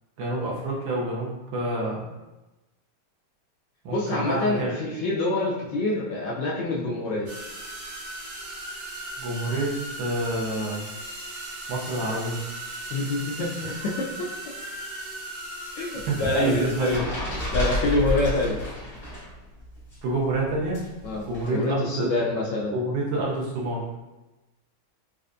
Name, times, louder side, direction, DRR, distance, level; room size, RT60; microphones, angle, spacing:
voice 1, 0.2-2.1 3.8-4.7 9.2-10.8 11.7-12.4 16.1-17.1 20.0-20.9 21.3-22.2 22.7-23.8, right 2 dB, 70° right, -4 dB, 1.3 m, -27 dB
voice 2, 3.9-7.3 12.9-14.3 15.8-17.0 17.5-18.6 21.0-22.7, left 2 dB, 75° left, -3 dB, 1.1 m, -26 dB
sound 1, 7.3-17.0, right 1 dB, 55° right, 1.5 m, -37 dB
sound 2, 16.0-19.3 19.6-21.5, left 1 dB, 40° left, 1.5 m, -31 dB
4.3 x 2.4 x 2.5 m, 1.1 s
omnidirectional pair, 2.3 m